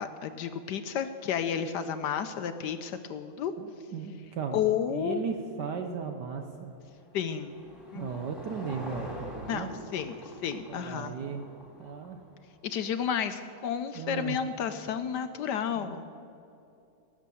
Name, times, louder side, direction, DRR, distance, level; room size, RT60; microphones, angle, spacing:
voice 1, 0.0-3.5 4.5-5.2 7.1-7.6 7.9-8.1 9.5-9.7 9.9-11.1 12.6-16.0, left 8 dB, 70° left, 10 dB, 1.1 m, -31 dB
voice 2, 3.6-6.7 7.9-9.7 10.7-11.5 11.8-12.2 14.0-14.4 15.8-16.0, right 6 dB, 65° right, 5 dB, 1.3 m, -36 dB
Car passing by / Engine, 6.2-12.7, equal, ahead, 2.4 m, -45 dB
18.5 x 7.5 x 6.9 m, 2.7 s
omnidirectional pair, 2.2 m